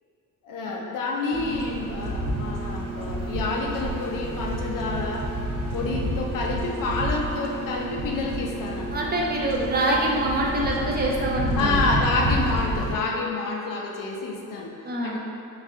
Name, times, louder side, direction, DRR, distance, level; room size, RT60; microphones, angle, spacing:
voice 1, 0.4-5.3 5.7-9.1 11.5-14.7 15.0-15.2, left 3 dB, 75° left, 0 dB, 0.6 m, -28 dB
sound 1, 1.3-13.0, right 1 dB, 80° right, 0.6 m, -29 dB
voice 2, 8.9-11.8 14.8-15.2, right 1 dB, 30° right, -3 dB, 0.4 m, -25 dB
4.0 x 2.5 x 3.5 m, 2.6 s
wide cardioid pair, 165°, 33 cm